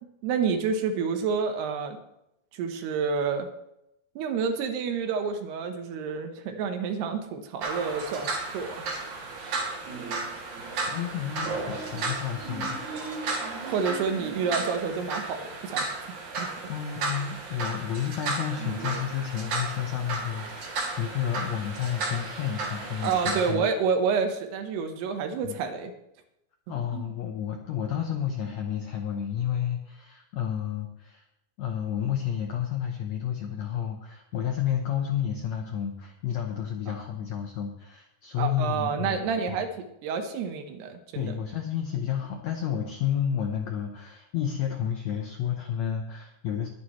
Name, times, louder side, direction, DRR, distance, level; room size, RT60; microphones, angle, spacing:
voice 1, 0.2-2.0 2.5-3.5 4.2-8.9 13.7-16.5 23.0-25.9 26.9-27.1 38.4-41.3, right 5 dB, 85° right, 6 dB, 3.3 m, -29 dB
sound 1, 7.6-23.5, right 3 dB, 50° right, 3.7 m, -33 dB
voice 2, 10.8-13.1 16.7-23.7 25.4-25.6 26.7-31.2 31.6-39.3 39.5-39.6 41.1-46.7, left 9 dB, 80° left, 3 dB, 1.6 m, -31 dB
21.0 x 9.4 x 3.2 m, 0.84 s
omnidirectional pair, 4.6 m